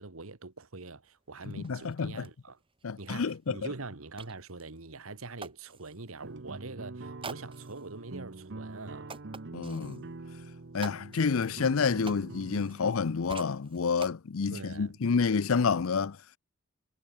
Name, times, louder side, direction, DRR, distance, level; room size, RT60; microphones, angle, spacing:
voice 1, 0.0-2.6 3.0-9.1 14.5-15.0, right 3 dB, 70° right, 1.7 m, -43 dB
sound 1, 1.0-1.1 1.4-6.1 7.2-7.9 8.4-8.5 9.1-10.0 10.8-13.0 13.3-14.2, right 4 dB, 25° right, 1.4 m, -47 dB
voice 2, 1.5-2.1 2.8-3.6 9.5-10.0 10.7-16.2, left 5 dB, 70° left, 0.6 m, -29 dB
sound 2, 6.2-12.9, right 2 dB, 55° right, 0.9 m, -44 dB
head